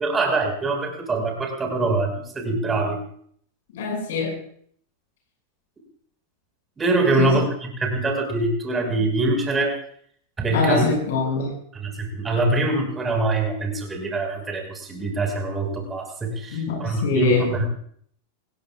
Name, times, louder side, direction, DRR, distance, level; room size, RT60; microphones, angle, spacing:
voice 1, 0.0-3.0 6.8-7.5 7.8-9.8 10.4-10.9 11.7-17.7, right 2 dB, 15° right, 2 dB, 5.5 m, -24 dB
voice 2, 3.7-4.4 7.2-7.4 10.5-11.5 16.5-17.5, left 4 dB, 55° left, 0 dB, 6.7 m, -23 dB
26.5 x 20.5 x 2.5 m, 0.62 s
figure-of-eight pair, 90°, 0 cm